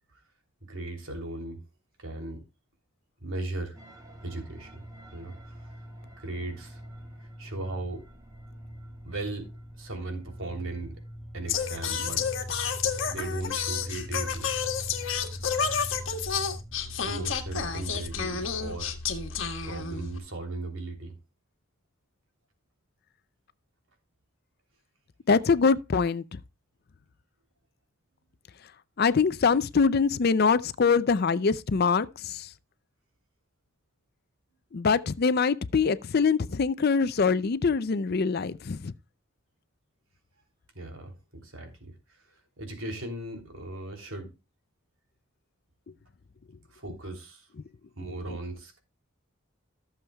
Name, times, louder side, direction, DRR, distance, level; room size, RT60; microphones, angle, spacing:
voice 1, 0.7-1.6 2.0-2.4 3.2-3.8 4.2-4.8 5.1-5.4 6.2-6.8 7.4-8.0 9.0-9.5 9.8-10.9 11.3-12.3 13.1-14.5 17.0-18.9 19.6-21.1 40.7-41.9 42.6-44.3 46.7-47.5 48.0-48.8, right 2 dB, 75° right, 3.1 m, -37 dB
sound 1, 3.7-19.0, equal, 15° right, 1.5 m, -47 dB
Singing, 11.5-20.2, left 6 dB, 65° left, 1.6 m, -30 dB
voice 2, 25.3-26.4 29.0-32.5 34.7-38.9, left 5 dB, 50° left, 0.5 m, -24 dB
15.0 x 7.2 x 2.3 m
head